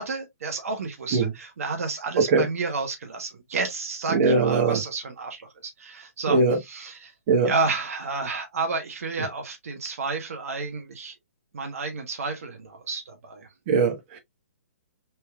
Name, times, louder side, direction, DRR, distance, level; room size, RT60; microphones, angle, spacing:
voice 1, 0.0-7.1 7.4-11.1 11.5-13.5, right 3 dB, 65° right, 1.3 m, -31 dB
voice 2, 4.1-4.8 6.3-6.6 7.3-7.5 13.7-14.2, right 4 dB, 35° right, 1.5 m, -21 dB
4.2 x 3.5 x 2.3 m
hypercardioid pair, 150°, 8 cm